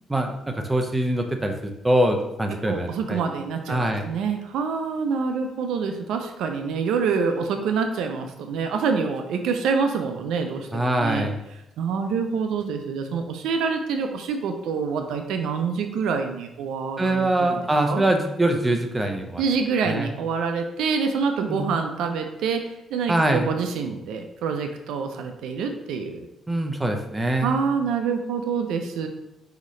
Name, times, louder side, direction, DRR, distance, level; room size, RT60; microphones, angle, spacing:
voice 1, 0.1-3.2 3.7-4.1 10.7-11.4 17.0-19.4 19.8-20.1 21.5-21.7 23.1-23.5 26.5-27.6, right 1 dB, 15° right, 3 dB, 0.6 m, -23 dB
voice 2, 2.7-11.3 11.8-18.1 19.4-26.2 27.4-29.1, right 5 dB, 85° right, 5 dB, 0.4 m, -26 dB
5.0 x 2.8 x 3.1 m, 0.91 s
cardioid pair, 90°, 0 cm